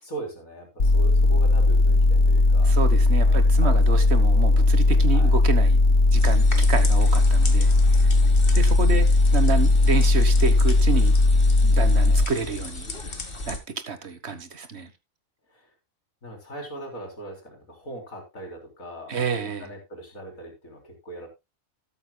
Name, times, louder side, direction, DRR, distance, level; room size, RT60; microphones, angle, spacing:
voice 1, 0.0-2.7 3.0-5.3 15.5-15.7 16.2-21.3, right 1 dB, 90° left, 4.3 m, -40 dB
sound 1, 0.8-12.2, left 2 dB, 65° left, 1.9 m, -18 dB
voice 2, 2.6-5.8 6.1-7.7 8.0-8.1 8.5-11.1 11.6-12.9 13.5-13.6 13.9-14.9 19.1-19.7, right 5 dB, 55° right, 1.5 m, -29 dB
sound 2, 6.1-13.6, left 2 dB, 40° left, 2.0 m, -35 dB
13.0 x 13.0 x 2.3 m
omnidirectional pair, 1.4 m